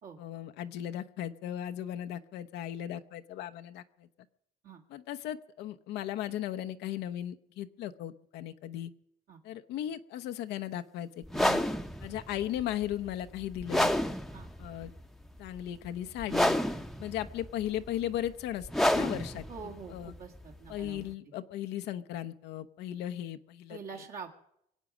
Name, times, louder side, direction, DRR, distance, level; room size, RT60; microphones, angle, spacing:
voice 1, 0.2-4.1 4.9-8.9 9.4-11.6 12.0-13.9 14.6-14.9 15.4-16.6 17.0-18.7 18.9-19.4 19.9-20.1 20.7-23.8, left 11 dB, 80° left, 8 dB, 0.8 m, -37 dB
sound 1, 11.2-21.1, left 1 dB, ahead, 0.8 m, -31 dB
voice 2, 19.5-21.3 23.7-24.3, right 5 dB, 60° right, 0 dB, 2.2 m, -45 dB
24.0 x 8.3 x 6.1 m, 0.76 s
cardioid pair, 110°, 17 cm